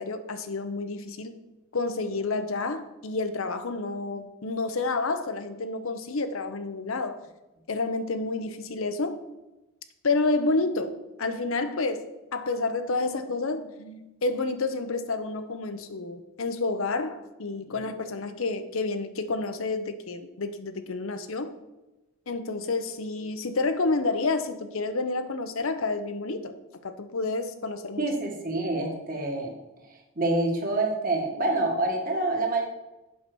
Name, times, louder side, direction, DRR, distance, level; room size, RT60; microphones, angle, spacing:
voice 1, 0.0-1.3 1.7-7.2 7.7-9.2 10.0-12.0 12.3-21.5 22.3-26.5 26.8-28.0, left 3 dB, 65° left, 9 dB, 0.7 m, -29 dB
voice 2, 28.0-29.5 29.9-32.7, right 2 dB, 40° right, 1 dB, 1.6 m, -27 dB
7.5 x 5.6 x 6.1 m, 1.0 s
head